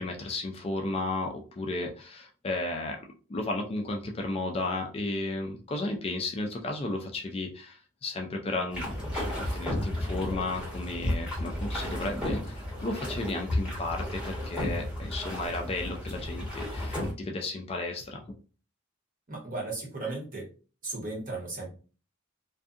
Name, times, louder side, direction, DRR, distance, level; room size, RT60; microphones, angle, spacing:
voice 1, 0.0-3.0 3.3-18.2, left 2 dB, 30° left, 2 dB, 0.4 m, -34 dB
sound 1, 8.7-17.1, left 1 dB, 5° right, 1.1 m, -33 dB
voice 2, 19.3-20.5 20.8-21.7, right 2 dB, 40° right, -3 dB, 1.2 m, -35 dB
2.6 x 2.4 x 2.5 m, 0.36 s
head